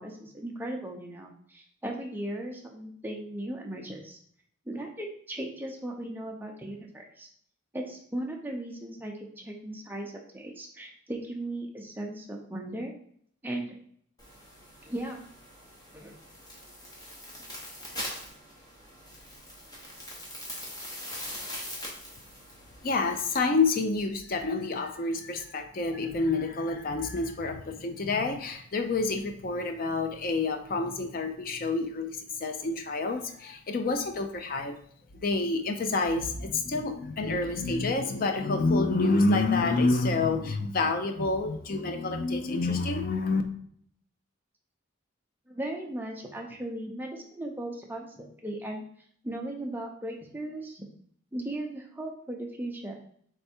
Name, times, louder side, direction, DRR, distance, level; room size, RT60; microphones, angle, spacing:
voice 1, 0.0-4.2 4.7-7.3 7.7-12.9 13.4-13.7 14.8-15.2 15.9-16.2 45.5-48.8 49.2-50.8 51.3-53.0, right 1 dB, 10° right, 0 dB, 0.6 m, -37 dB
sound 1, 14.2-23.4, left 1 dB, 20° left, 1.0 m, -42 dB
voice 2, 22.8-34.8 35.1-43.4, left 3 dB, 45° left, 6 dB, 0.5 m, -28 dB
3.5 x 3.4 x 4.3 m, 0.63 s
head